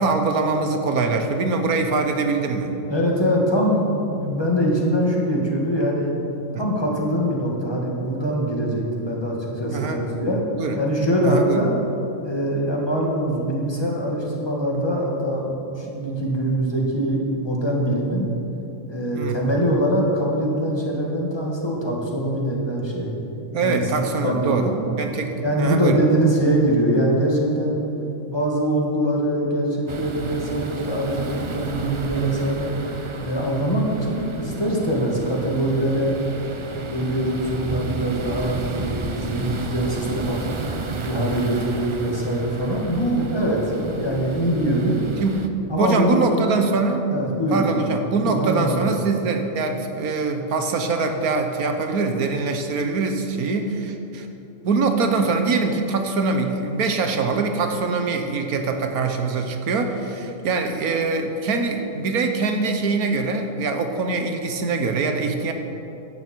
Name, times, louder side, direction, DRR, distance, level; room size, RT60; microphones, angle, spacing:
voice 1, 0.0-2.7 6.5-6.6 9.7-10.0 10.6-10.8 11.2-11.6 19.1-19.4 23.5-24.7 25.0-26.0 45.2-45.4 45.8-47.1 47.5-54.3 54.6-65.5, right 4 dB, 85° right, 5 dB, 1.5 m, -23 dB
voice 2, 2.9-6.1 6.6-10.4 10.8-11.7 12.2-18.3 18.9-23.1 23.6-23.8 24.2-24.8 25.4-27.8 28.3-32.7 33.2-36.2 36.8-40.5 41.0-45.0 45.7-46.4 47.1-47.7 48.2-48.9, right 1 dB, 15° left, -2 dB, 2.1 m, -23 dB
sound 1, 29.9-45.5, right 3 dB, 35° right, 0.5 m, -32 dB
15.5 x 11.0 x 4.6 m, 2.9 s
omnidirectional pair, 1.5 m